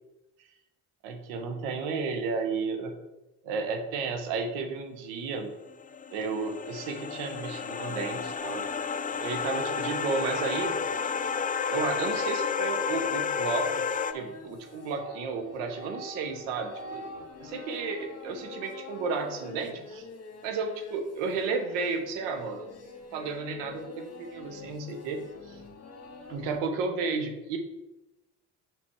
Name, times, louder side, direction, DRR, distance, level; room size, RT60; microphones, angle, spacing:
voice 1, 1.0-3.0 3.4-5.5 6.1-8.7 9.2-10.8 11.7-13.8 14.1-17.0 17.4-20.0 20.4-22.7 23.1-25.2 25.5-25.6 26.3-27.6, right 4 dB, 85° right, 5 dB, 1.2 m, -33 dB
sound 1, 5.7-14.1, left 6 dB, 20° left, 0.4 m, -31 dB
sound 2, 7.8-26.6, left 3 dB, 35° left, 1.5 m, -45 dB
6.1 x 5.2 x 4.7 m, 0.99 s
hypercardioid pair, 55°, 43 cm